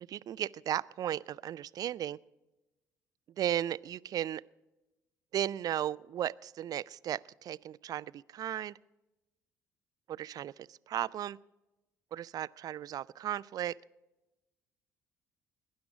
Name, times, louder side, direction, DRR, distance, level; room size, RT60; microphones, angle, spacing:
voice 1, 0.1-2.2 3.4-4.4 5.3-8.8 10.1-11.4 12.1-13.8, right 11 dB, 45° right, 0.4 m, -35 dB
19.0 x 10.5 x 5.0 m
figure-of-eight pair, 50°, 9 cm